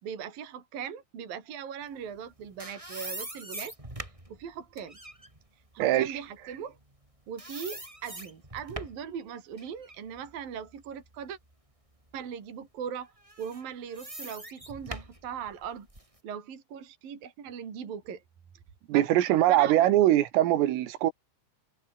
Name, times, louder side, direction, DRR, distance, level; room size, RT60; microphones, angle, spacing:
voice 1, 0.0-3.7 4.3-5.0 5.7-6.8 7.3-11.4 12.1-15.9 16.2-18.2 18.9-19.1 19.5-19.8, right 7 dB, 45° right, 5.0 m, -39 dB
sound 1, 2.2-7.1 7.4-9.1 9.6-11.5 12.0-12.1 13.2-16.2, right 1 dB, 5° right, 3.6 m, -43 dB
voice 2, 5.8-6.2 18.9-21.1, right 13 dB, 80° right, 4.3 m, -22 dB
omnidirectional pair, 5.8 m